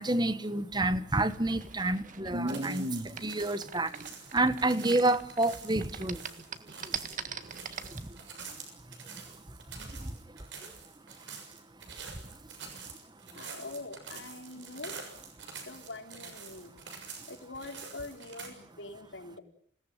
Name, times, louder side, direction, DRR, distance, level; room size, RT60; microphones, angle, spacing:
voice 1, 0.0-6.2 6.6-7.0 7.9-8.2 9.1-9.3 9.7-10.7 11.9-12.0 12.3-12.4, right 2 dB, 25° right, 1.2 m, -30 dB
sound 1, 1.2-5.5 5.8-8.0, right 3 dB, 45° right, 1.7 m, -37 dB
sound 2, 2.3-18.5, right 5 dB, 80° right, 6.8 m, -47 dB
voice 2, 13.3-14.9 15.7-16.8 17.3-19.4, left 2 dB, 85° left, 4.0 m, -44 dB
28.0 x 18.0 x 9.2 m
head